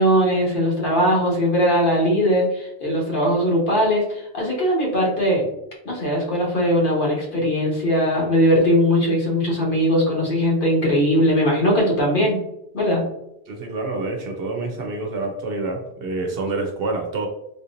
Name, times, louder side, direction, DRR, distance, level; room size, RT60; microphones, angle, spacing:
voice 1, 0.0-5.5 5.8-12.4 12.7-13.0, equal, 50° left, -3 dB, 1.3 m, -20 dB
voice 2, 13.5-17.3, right 3 dB, 65° right, 3 dB, 0.8 m, -27 dB
3.7 x 2.9 x 2.5 m, 0.82 s
omnidirectional pair, 1.1 m